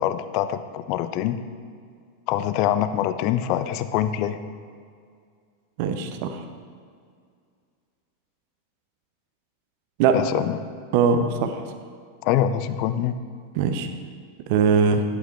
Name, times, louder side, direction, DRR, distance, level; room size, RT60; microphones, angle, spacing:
voice 1, 0.0-1.4 2.3-4.4 10.1-10.6 12.2-13.2, left 11 dB, 45° left, 12 dB, 0.4 m, -24 dB
voice 2, 5.8-6.4 10.0-10.1 10.9-11.6 13.6-13.9 14.5-15.0, right 6 dB, 45° right, 8 dB, 0.7 m, -21 dB
11.0 x 8.3 x 3.4 m, 2.2 s
figure-of-eight pair, 90°, 0 cm